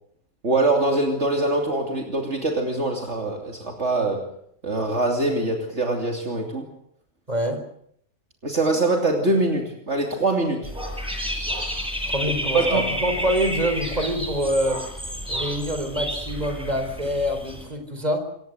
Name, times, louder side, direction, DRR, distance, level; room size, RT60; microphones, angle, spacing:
voice 1, 0.4-4.3 4.6-6.7 8.4-10.7 12.2-12.9, right 2 dB, 55° right, 2 dB, 3.1 m, -23 dB
voice 2, 7.3-7.6 12.0-14.8 15.3-18.2, equal, 30° right, 6 dB, 4.6 m, -25 dB
Dog / Bird, 10.6-17.6, equal, 5° right, 8.1 m, -30 dB
27.0 x 16.5 x 8.1 m, 0.69 s
omnidirectional pair, 1.4 m